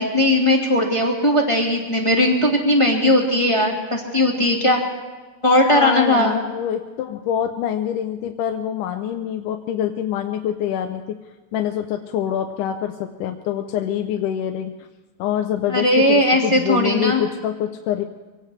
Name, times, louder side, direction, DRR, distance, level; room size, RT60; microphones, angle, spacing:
voice 1, 0.0-4.8 5.4-6.4 15.7-17.2, left 1 dB, 15° left, -1 dB, 1.1 m, -18 dB
voice 2, 5.7-11.0 11.5-14.7 15.2-18.0, left 10 dB, 80° left, 5 dB, 2.2 m, -25 dB
24.0 x 18.0 x 3.3 m, 1.3 s
omnidirectional pair, 3.7 m